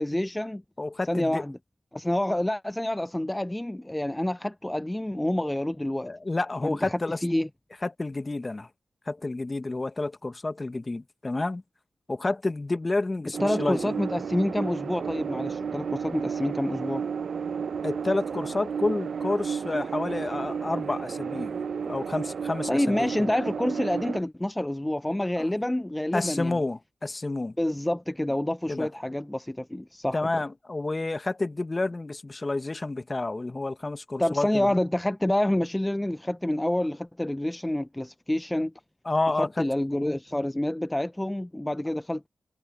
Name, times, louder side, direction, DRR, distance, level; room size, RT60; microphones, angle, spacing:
voice 1, 0.0-0.6 1.1-1.6 1.9-6.1 6.6-7.5 13.4-17.0 22.7-26.6 27.6-30.3 34.2-38.7 39.4-42.3, left 1 dB, 10° left, 0.6 m, -28 dB
voice 2, 0.8-1.4 6.0-7.2 7.8-8.7 9.1-11.6 12.1-13.9 17.8-21.5 21.9-23.3 25.4-25.5 26.1-27.6 28.7-28.9 30.1-34.7 39.0-39.7, left 2 dB, 30° left, 1.0 m, -29 dB
sound 1, 13.3-24.2, right 6 dB, 70° right, 0.6 m, -32 dB
cardioid pair, 55°, 0 cm